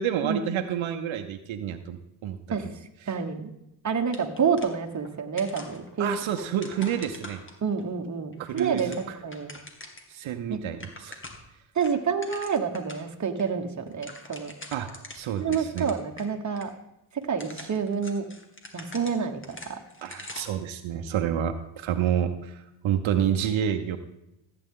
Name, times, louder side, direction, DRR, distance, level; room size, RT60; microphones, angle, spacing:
voice 1, 0.0-2.7 3.0-3.1 6.0-7.4 8.4-9.2 10.1-11.2 14.7-14.9 15.1-15.9 20.0-24.0, right 9 dB, 75° right, 7 dB, 0.9 m, -29 dB
voice 2, 3.1-3.5 3.8-6.1 7.6-9.5 10.5-10.6 11.7-14.5 15.4-16.7 17.3-18.2 18.7-19.8, right 6 dB, 35° right, 5 dB, 1.3 m, -28 dB
sound 1, 4.1-5.1 5.4-7.8 8.3-10.1 10.4-10.5 10.7-11.5 11.8-13.1 13.4-13.5 13.8-16.3 16.6-16.7 17.2-20.6, left 2 dB, 25° left, 1.8 m, -44 dB
14.5 x 8.8 x 3.8 m, 0.87 s
cardioid pair, 80°, 47 cm